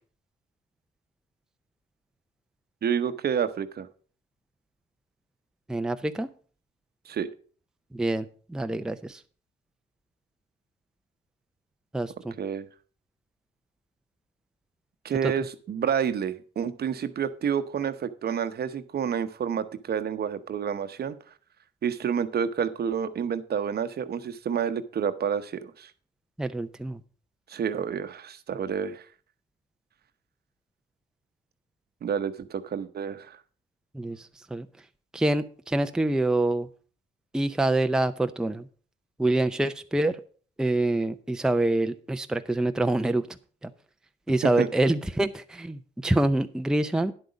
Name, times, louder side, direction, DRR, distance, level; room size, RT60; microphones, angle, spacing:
voice 1, 2.8-3.9 7.1-7.3 12.4-12.7 15.0-21.2 21.8-25.9 27.5-29.0 32.0-33.4 44.6-44.7, right 7 dB, 55° right, 11 dB, 0.9 m, -29 dB
voice 2, 5.7-6.3 7.9-9.2 11.9-12.3 26.4-27.0 33.9-34.7 35.1-36.7 37.3-38.7 39.2-40.2 40.6-43.3 43.6-43.7 44.3-47.1, right 2 dB, 5° right, 8 dB, 0.6 m, -26 dB
10.0 x 7.9 x 5.1 m, 0.42 s
cardioid pair, 90°, 20 cm